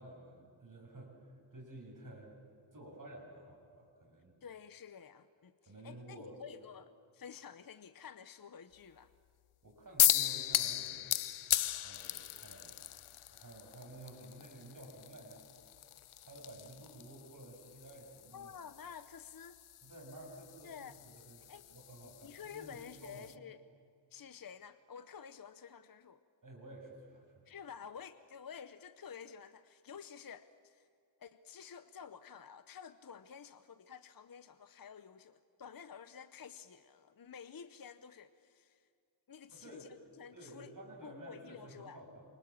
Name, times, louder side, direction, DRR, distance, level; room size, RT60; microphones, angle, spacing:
voice 1, 0.0-2.4 2.7-4.3 5.7-6.4 9.6-12.8 13.3-15.4 16.2-18.5 19.8-21.4 21.7-23.3 26.4-27.5 39.5-39.9 40.3-42.3, right 1 dB, 40° right, 0 dB, 7.0 m, -52 dB
voice 2, 4.4-9.1 18.3-19.6 20.6-21.0 21.5-21.7 22.0-23.6 24.1-26.2 27.4-30.9 31.2-38.9 39.3-40.7 41.0-42.0, left 7 dB, 45° left, 12 dB, 0.8 m, -51 dB
sound 1, 10.0-23.3, left 12 dB, 85° left, 0.7 m, -37 dB
28.0 x 25.0 x 7.3 m, 2.3 s
wide cardioid pair, 100°, 48 cm